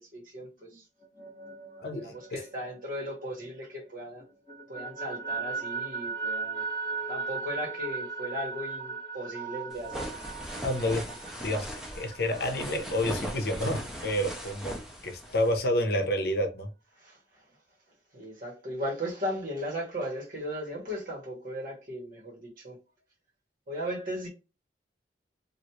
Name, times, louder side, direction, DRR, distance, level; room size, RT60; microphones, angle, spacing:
voice 1, 0.0-0.8 1.9-4.2 4.7-6.6 7.1-10.1 17.0-17.4 18.1-22.8 23.7-24.3, equal, 50° right, 1.5 m, -37 dB
sound 1, 1.0-3.9 4.2-13.6, right 4 dB, 20° left, 1.6 m, -38 dB
voice 2, 1.8-2.1 10.6-11.0 11.4-14.7 15.0-16.7, left 1 dB, 60° left, 0.7 m, -29 dB
sound 2, 9.7-15.6, equal, 5° right, 0.6 m, -39 dB
3.1 x 2.5 x 2.8 m
head